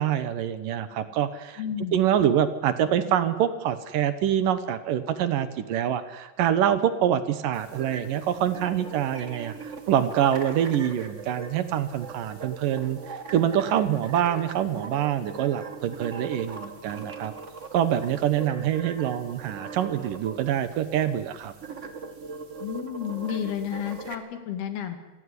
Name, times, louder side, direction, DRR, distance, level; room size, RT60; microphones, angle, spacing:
voice 1, 0.0-1.6 1.9-17.3 17.7-21.5, right 10 dB, 70° right, 13 dB, 2.6 m, -25 dB
voice 2, 1.6-2.0 22.6-25.0, left 9 dB, 80° left, 8 dB, 4.3 m, -31 dB
sound 1, 7.5-24.1, right 4 dB, 50° right, 0.8 m, -40 dB
27.0 x 16.5 x 9.8 m, 1.1 s
omnidirectional pair, 4.4 m